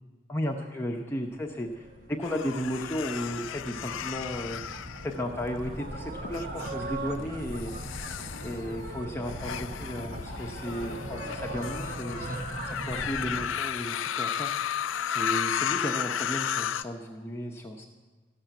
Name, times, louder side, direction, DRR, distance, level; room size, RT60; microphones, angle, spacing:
voice 1, 0.3-4.6 5.0-7.7 8.4-12.4 12.6-14.5 15.1-17.8, equal, 10° left, 0 dB, 0.8 m, -34 dB
sound 1, 1.4-13.5, right 1 dB, 45° right, 1.1 m, -39 dB
sound 2, 2.2-5.7 6.2-6.7 7.5-16.8, left 9 dB, 80° left, 0.4 m, -34 dB
14.0 x 7.2 x 9.0 m, 1.3 s
head